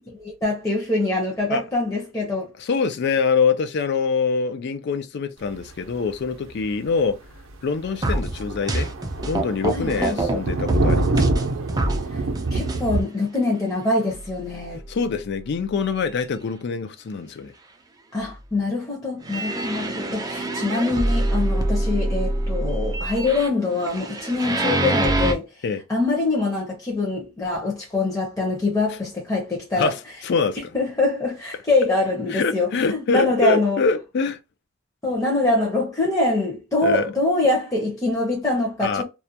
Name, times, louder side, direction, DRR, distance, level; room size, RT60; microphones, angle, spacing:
voice 1, 0.2-2.5 9.7-10.2 12.1-12.2 12.5-14.8 18.1-25.5 25.9-29.9 30.7-33.8 35.0-39.0, left 2 dB, 15° left, 0.7 m, -24 dB
voice 2, 2.6-7.2 7.6-8.9 9.3-11.2 14.9-17.5 25.6-25.8 28.9-29.0 29.8-30.6 32.3-34.4 36.8-37.1 38.8-39.0, left 5 dB, 60° left, 0.4 m, -24 dB
Thunder, 6.1-6.2 6.6-6.7 7.1-7.2 7.5-7.6 7.8-13.0, right 3 dB, 90° right, 0.5 m, -26 dB
sound 1, 8.0-10.4 10.7-12.0 12.4-12.8 13.4-13.5 14.1-14.2 14.7-14.8 19.2-25.3, right 1 dB, 20° right, 0.3 m, -25 dB
2.3 x 2.1 x 2.7 m
head